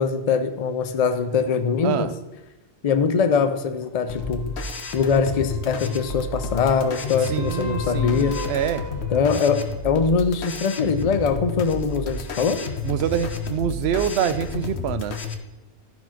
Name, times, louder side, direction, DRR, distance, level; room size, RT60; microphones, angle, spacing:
voice 1, 0.0-2.1 2.8-4.5 4.9-8.4 9.1-12.6, left 5 dB, 40° left, 9 dB, 0.6 m, -22 dB
sound 1, 4.1-15.3, left 4 dB, 85° left, 1.2 m, -31 dB
sound 2, 4.1-9.8 13.9-14.0, left 2 dB, 70° left, 1.8 m, -41 dB
voice 2, 7.3-8.8 12.8-15.2, right 9 dB, 75° right, 13 dB, 0.9 m, -25 dB
11.5 x 4.7 x 5.8 m, 1.0 s
omnidirectional pair, 1.1 m